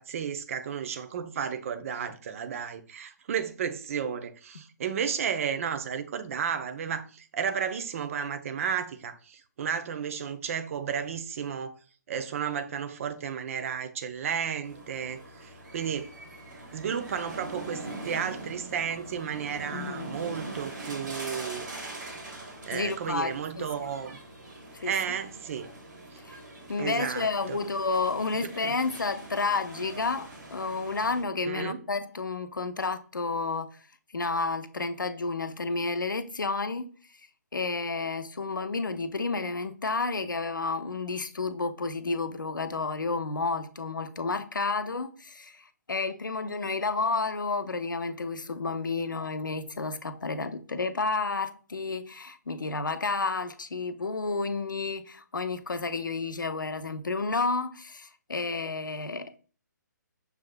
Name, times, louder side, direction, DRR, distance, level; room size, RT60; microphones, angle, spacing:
voice 1, 0.0-11.7 12.1-16.1 16.7-21.7 22.7-24.2 24.8-25.7 26.1-26.2 26.8-27.6 28.4-28.7 31.5-31.8, right 7 dB, 45° right, 0.6 m, -33 dB
sound 1, 14.6-31.2, right 2 dB, 70° right, 1.6 m, -43 dB
voice 2, 19.7-20.2 22.7-23.7 24.7-24.9 26.2-26.4 26.7-33.7 34.1-36.9 37.5-59.4, left 4 dB, 85° left, 0.6 m, -31 dB
6.5 x 3.4 x 2.2 m
figure-of-eight pair, 135°, 10 cm